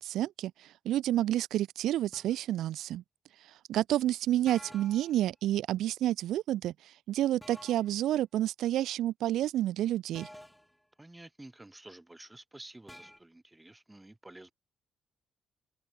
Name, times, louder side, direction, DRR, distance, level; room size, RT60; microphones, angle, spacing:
voice 1, 0.0-3.0 3.7-6.7 7.1-10.3, right 13 dB, 80° right, 0.4 m, -29 dB
sound 1, 2.1-2.4 4.5-5.2 7.4-8.0 10.1-10.8 12.9-13.2, equal, 5° left, 2.1 m, -50 dB
voice 2, 11.0-14.5, right 1 dB, 10° right, 5.1 m, -51 dB
open air
cardioid pair, 90°, 0 cm